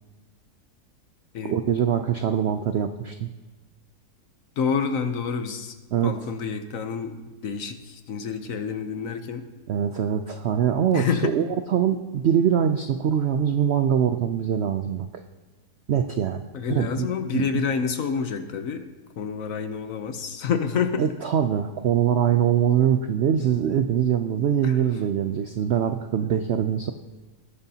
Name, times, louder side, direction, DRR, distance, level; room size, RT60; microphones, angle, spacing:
voice 1, 1.5-3.3 5.9-6.1 9.7-15.2 15.9-16.4 16.7-17.1 17.3-17.6 21.0-26.9, right 9 dB, 75° right, 8 dB, 0.6 m, -23 dB
voice 2, 4.6-5.7 6.0-7.2 7.4-9.4 10.9-11.4 16.5-18.9 19.2-21.0 24.6-24.8 26.2-26.3, left 6 dB, 60° left, 8 dB, 1.1 m, -28 dB
19.0 x 10.5 x 2.8 m, 1.2 s
omnidirectional pair, 1.7 m